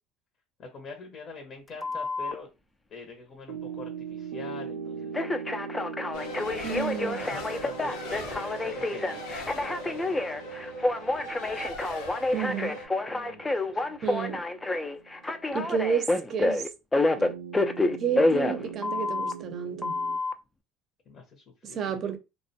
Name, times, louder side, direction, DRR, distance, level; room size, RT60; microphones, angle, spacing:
voice 1, 0.6-2.5 2.9-5.1 6.1-12.2 12.5-14.0 21.1-22.2, left 3 dB, 45° left, 0.7 m, -46 dB
Telephone, 1.8-2.3 5.1-19.3 19.8-20.3, left 2 dB, 15° left, 0.3 m, -28 dB
sound 1, 3.5-15.9 17.2-20.2, right 6 dB, 90° right, 0.3 m, -42 dB
Race car auto racing, 6.1-12.9, left 1 dB, 85° left, 0.8 m, -39 dB
voice 2, 6.6-7.2 12.3-12.8 14.0-14.4 15.5-16.7 18.0-19.9 21.6-22.2, right 7 dB, 45° right, 0.6 m, -31 dB
2.4 x 2.1 x 2.6 m
supercardioid pair, 90°, 0 cm